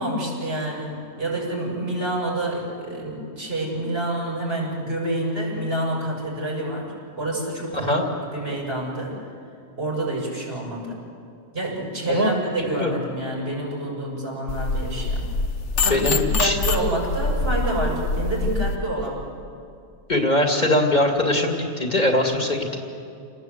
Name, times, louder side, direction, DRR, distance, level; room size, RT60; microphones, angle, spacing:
voice 1, 0.0-6.9 7.2-8.0 8.3-9.1 9.8-11.0 11.5-15.2 15.8-19.3, right 1 dB, 60° right, -3 dB, 7.2 m, -28 dB
voice 2, 7.7-8.0 12.1-12.3 12.6-12.9 15.9-16.6 20.1-22.8, left 1 dB, 40° left, 1 dB, 2.6 m, -21 dB
sound 1, 14.5-18.8, left 3 dB, 85° left, 1.5 m, -25 dB
29.5 x 19.0 x 8.2 m, 2.4 s
omnidirectional pair, 1.2 m